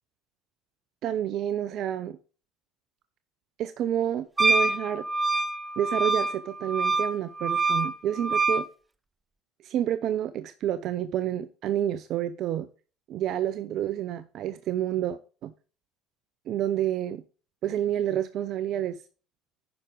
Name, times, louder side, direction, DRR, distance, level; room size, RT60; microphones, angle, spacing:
voice 1, 1.0-2.2 3.6-5.1 5.8-8.7 9.6-12.7 13.1-15.5 16.5-17.2 17.6-19.0, right 11 dB, 55° right, 0.6 m, -29 dB
Wind instrument woodwind instrument, 4.4-8.7, right 3 dB, 15° right, 0.6 m, -26 dB
9.7 x 5.8 x 3.9 m
hypercardioid pair, 80°, 0 cm